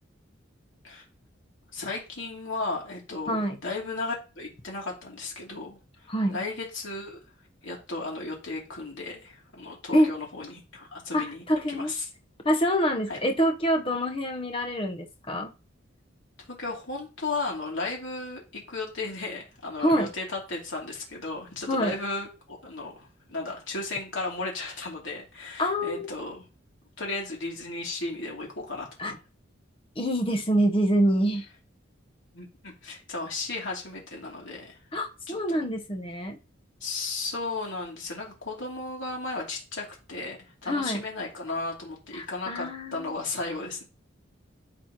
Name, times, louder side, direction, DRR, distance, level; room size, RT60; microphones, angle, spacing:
voice 1, 1.7-5.8 6.3-7.2 7.6-12.0 13.1-13.2 16.5-26.5 27.0-29.2 32.3-34.8 35.3-35.6 36.8-40.4 40.6-43.8, left 3 dB, 75° left, -1 dB, 2.9 m, -35 dB
voice 2, 3.3-3.6 6.1-6.4 9.9-10.1 11.1-11.9 12.4-15.5 19.8-20.1 21.7-22.0 25.6-26.1 29.0-29.2 30.0-31.5 34.9-36.4 40.7-41.0 42.1-43.2, equal, 25° left, 4 dB, 1.0 m, -26 dB
13.0 x 4.4 x 3.0 m, 0.32 s
head